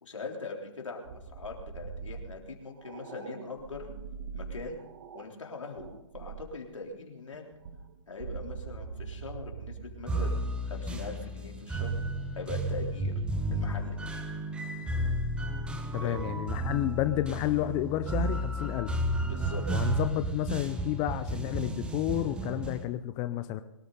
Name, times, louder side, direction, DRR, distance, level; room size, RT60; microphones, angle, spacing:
voice 1, 0.0-3.9 4.3-4.8 5.1-5.9 6.1-7.4 8.1-10.4 10.6-12.0 12.4-13.1 13.5-14.2 16.0-16.4 19.2-19.7, left 3 dB, 75° left, 1 dB, 3.7 m, -41 dB
sound 1, 1.0-5.3 5.8-6.6 7.3-11.5 13.7-14.2, right 6 dB, 50° right, 1.4 m, -43 dB
sound 2, 10.1-22.8, right 1 dB, 5° right, 1.0 m, -32 dB
voice 2, 15.9-18.9 19.7-23.6, left 14 dB, 20° left, 11 dB, 0.5 m, -31 dB
23.0 x 13.0 x 3.9 m, 0.90 s
figure-of-eight pair, 135°, 16 cm